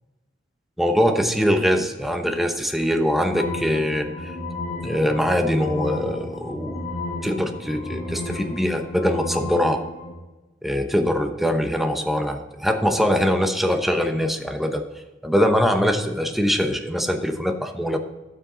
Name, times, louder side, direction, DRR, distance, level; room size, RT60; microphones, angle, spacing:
voice 1, 0.8-4.3 4.8-6.8 7.2-9.8 10.6-14.8 15.2-18.0, equal, ahead, 5 dB, 0.9 m, -22 dB
sound 1, 3.3-10.1, left 2 dB, 40° left, 1.6 m, -33 dB
12.0 x 6.6 x 3.9 m, 1.1 s
head